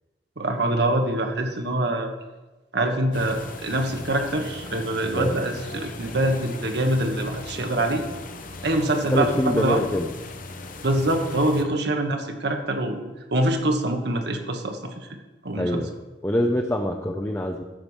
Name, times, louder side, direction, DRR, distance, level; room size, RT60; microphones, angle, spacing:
voice 1, 0.4-2.1 2.7-8.0 8.6-9.8 10.8-13.0 13.3-15.1 15.4-15.8, right 1 dB, 65° right, 4 dB, 1.3 m, -24 dB
sound 1, 3.1-11.6, left 3 dB, 50° left, 1.0 m, -39 dB
voice 2, 9.1-10.1 15.6-15.9 16.2-17.6, left 1 dB, 15° left, 2 dB, 0.6 m, -24 dB
13.0 x 4.8 x 7.3 m, 1.1 s
head